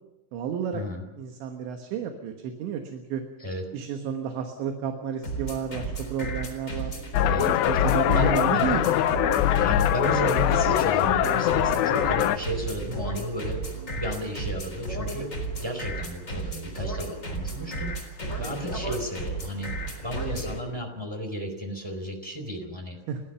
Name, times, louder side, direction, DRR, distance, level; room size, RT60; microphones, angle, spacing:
voice 1, 0.3-0.8 1.2-3.2 3.7-8.8 18.4-18.6 23.1-23.3, right 7 dB, 70° right, 5 dB, 3.5 m, -32 dB
sound 1, 5.2-20.6, right 2 dB, 15° left, 3.4 m, -33 dB
sound 2, 7.1-12.4, left 12 dB, 80° left, 2.7 m, -22 dB
voice 2, 8.1-8.9 9.6-13.6 13.9-19.7 20.0-23.0, equal, 5° right, 4 dB, 3.3 m, -33 dB
29.5 x 13.5 x 7.0 m, 1.0 s
omnidirectional pair, 5.8 m